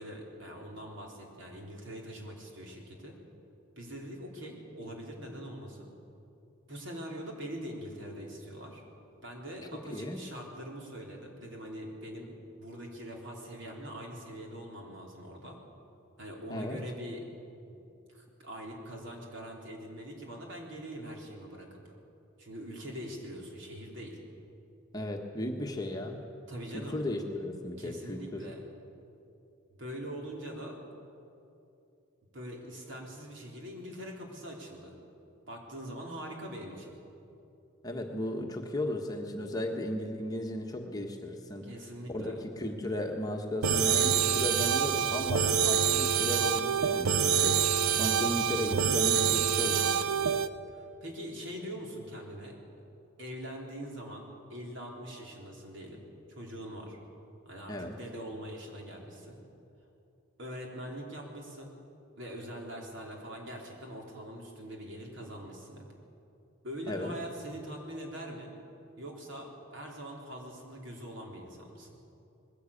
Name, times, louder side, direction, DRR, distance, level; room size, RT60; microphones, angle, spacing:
voice 1, 0.0-3.2 3.8-5.9 6.7-8.8 9.2-15.6 16.2-17.2 17.7-17.8 18.1-21.8 22.4-24.2 26.5-27.0 27.8-28.6 29.8-30.8 32.3-34.9 35.5-36.9 41.6-42.4 50.7-52.6 53.2-56.0 56.3-57.0 57.5-59.4 60.4-61.7 62.2-65.8 66.6-68.5 69.0-72.0, equal, 60° right, 0 dB, 3.7 m, -43 dB
voice 2, 9.6-10.2 16.5-16.8 24.9-26.2 26.7-28.5 37.8-41.6 42.1-50.2 57.7-57.9 66.9-67.1, left 1 dB, 20° left, 2 dB, 1.4 m, -35 dB
sound 1, 43.6-50.5, right 7 dB, 90° right, 0.7 m, -26 dB
20.5 x 16.0 x 8.6 m, 2.8 s
head